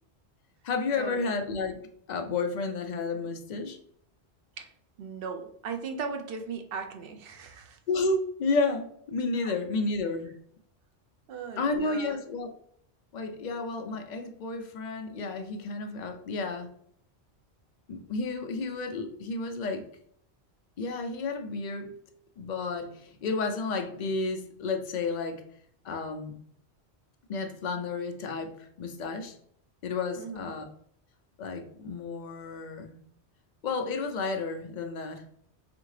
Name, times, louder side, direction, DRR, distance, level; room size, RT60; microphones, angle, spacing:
voice 1, 0.6-1.8 2.1-3.8 7.9-10.3 11.6-12.5 13.1-16.7 17.9-19.8 20.8-21.9 22.4-25.4 25.8-26.4 27.3-29.4 29.8-30.7 31.4-32.9 33.6-35.2, left 3 dB, 55° left, 5 dB, 0.6 m, -31 dB
voice 2, 5.0-7.8 9.4-9.5 11.3-12.2 30.2-30.5, right 5 dB, 60° right, 5 dB, 0.8 m, -38 dB
4.2 x 2.8 x 3.1 m, 0.65 s
omnidirectional pair, 1.1 m